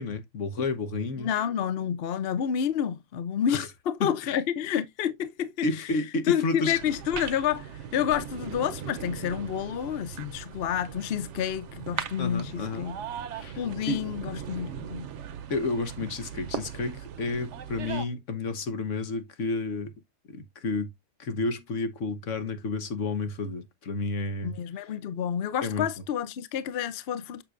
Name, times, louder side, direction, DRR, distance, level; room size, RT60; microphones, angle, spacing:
voice 1, 0.0-1.3 3.5-3.7 4.0-4.3 5.6-6.8 12.2-12.9 13.3-13.6 13.9-14.0 15.5-19.9 20.3-20.9 21.2-24.6 25.6-25.9, left 3 dB, 80° left, 1.5 m, -31 dB
voice 2, 1.2-5.9 6.3-13.0 13.6-15.1 24.4-27.4, left 9 dB, 60° left, 0.8 m, -29 dB
sound 1, 6.6-18.1, right 8 dB, 75° right, 1.0 m, -39 dB
7.3 x 6.4 x 2.5 m
omnidirectional pair, 1.3 m